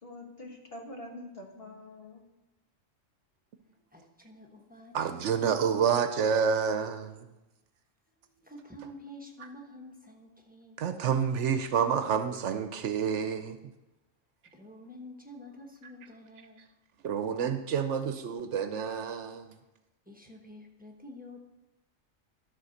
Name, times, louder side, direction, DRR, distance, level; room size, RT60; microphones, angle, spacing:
voice 1, 0.0-2.3, left 1 dB, 50° left, 1 dB, 1.5 m, -45 dB
voice 2, 3.9-5.5 8.3-10.9 14.5-16.7 19.5-19.6 20.1-21.4, left 1 dB, 10° right, 1 dB, 1.0 m, -49 dB
voice 3, 4.9-7.3 10.8-13.6 17.0-19.5, right 7 dB, 70° right, 9 dB, 0.9 m, -28 dB
12.5 x 4.2 x 6.4 m, 1.0 s
omnidirectional pair, 1.3 m